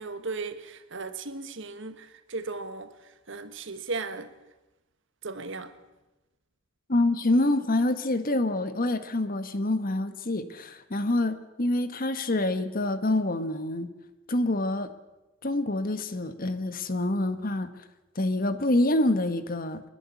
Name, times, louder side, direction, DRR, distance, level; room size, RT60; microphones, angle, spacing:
voice 1, 0.0-4.3 5.2-5.7, right 3 dB, 65° right, 1.6 m, -36 dB
voice 2, 6.9-13.9 14.3-14.9 15.4-17.7 18.1-19.8, left 1 dB, 45° left, 1.5 m, -26 dB
29.5 x 11.0 x 8.5 m
head